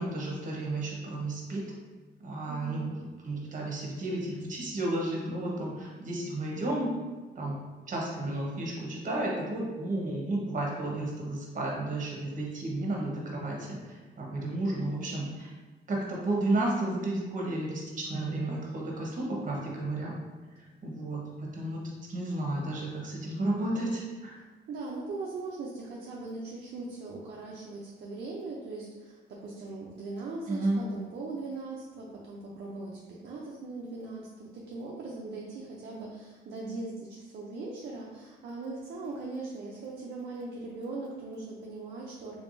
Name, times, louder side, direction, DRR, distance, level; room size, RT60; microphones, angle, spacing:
voice 1, 0.0-1.6 2.2-6.9 7.3-7.6 7.9-15.5 15.9-20.2 20.5-21.8 22.1-24.4 30.5-30.8, right 2 dB, 40° right, -2 dB, 1.1 m, -32 dB
voice 2, 2.5-2.9 24.4-42.4, right 3 dB, 60° right, -4 dB, 0.6 m, -40 dB
3.4 x 3.4 x 2.6 m, 1.3 s
cardioid pair, 90°, 20 cm